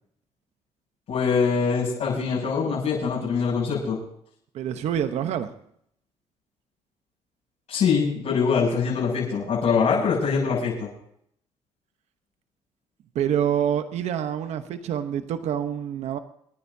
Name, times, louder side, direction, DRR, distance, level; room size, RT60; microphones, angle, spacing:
voice 1, 1.1-4.0 7.7-10.9, left 5 dB, 75° left, -8 dB, 7.0 m, -23 dB
voice 2, 4.5-5.5 13.1-16.2, right 9 dB, 80° right, 9 dB, 1.0 m, -26 dB
28.0 x 10.0 x 2.8 m, 0.69 s
cardioid pair, 85°, 11 cm